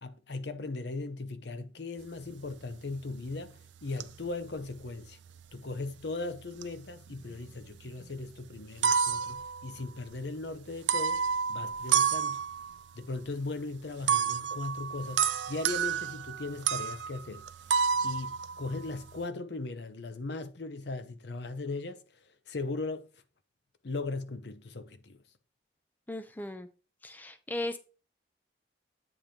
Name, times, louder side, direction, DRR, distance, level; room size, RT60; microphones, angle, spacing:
voice 1, 0.0-5.2 5.5-12.4 12.9-17.5 18.0-22.0 22.5-23.1 23.8-25.2, left 3 dB, 65° left, 0.7 m, -38 dB
sound 1, 3.0-3.5 4.0-5.4 6.4-7.5 7.8-7.9 8.6-10.1 10.8-12.8 14.1-19.2, right 7 dB, 80° right, 0.4 m, -30 dB
voice 2, 26.1-26.7 27.0-27.8, left 1 dB, 10° left, 0.4 m, -37 dB
8.7 x 3.0 x 5.1 m
head